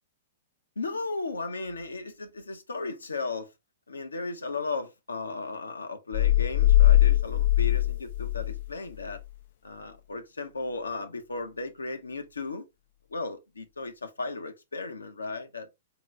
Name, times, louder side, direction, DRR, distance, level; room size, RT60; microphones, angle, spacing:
voice 1, 0.8-3.5 3.9-9.2 9.6-12.7 13.1-15.7, left 3 dB, 90° left, 0.9 m, -35 dB
sound 1, 6.1-8.7 9.0-9.2, left 14 dB, 55° left, 0.4 m, -21 dB
3.9 x 3.0 x 3.1 m
hypercardioid pair, 120°, 0 cm